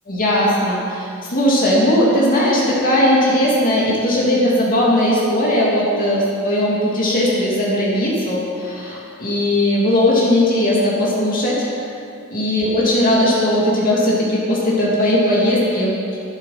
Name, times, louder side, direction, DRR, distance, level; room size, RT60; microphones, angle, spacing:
voice 1, 0.1-11.9 12.3-15.9, left 1 dB, 45° left, -6 dB, 2.6 m, -18 dB
12.0 x 12.0 x 5.8 m, 2.5 s
head